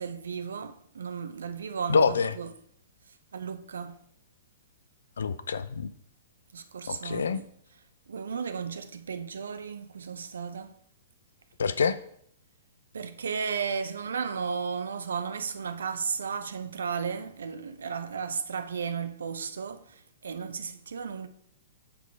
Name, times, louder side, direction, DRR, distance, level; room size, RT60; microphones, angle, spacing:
voice 1, 0.0-2.5 3.3-4.0 6.5-7.4 8.1-10.7 12.9-21.3, right 6 dB, 80° right, 0.8 m, -34 dB
voice 2, 1.9-2.3 5.2-5.9 6.9-7.4 11.6-12.0, left 5 dB, 80° left, 0.6 m, -26 dB
6.3 x 5.8 x 4.6 m
hypercardioid pair, 125°, 0 cm